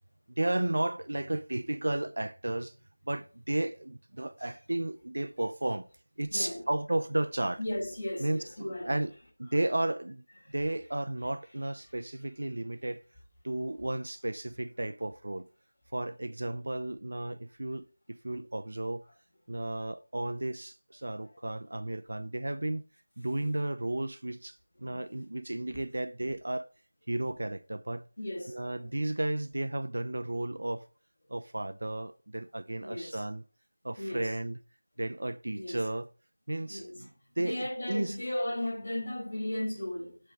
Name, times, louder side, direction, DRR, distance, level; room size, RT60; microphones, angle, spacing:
voice 1, 0.3-2.8 3.0-5.9 6.2-7.6 8.2-9.1 9.4-13.0 13.4-15.5 15.9-19.0 19.5-22.9 23.2-26.7 27.1-28.1 28.5-30.9 31.3-33.4 33.8-34.6 35.0-36.1 36.5-38.2, right 1 dB, 55° right, 0.6 m, -33 dB
voice 2, 6.3-6.6 7.6-8.9 24.8-25.0 25.7-25.8 28.2-28.7 32.8-33.2 34.0-34.3 35.5-35.8 36.7-37.0 37.4-40.2, left 1 dB, 30° left, 4.8 m, -35 dB
7.8 x 4.7 x 6.3 m
figure-of-eight pair, 180°, 0 cm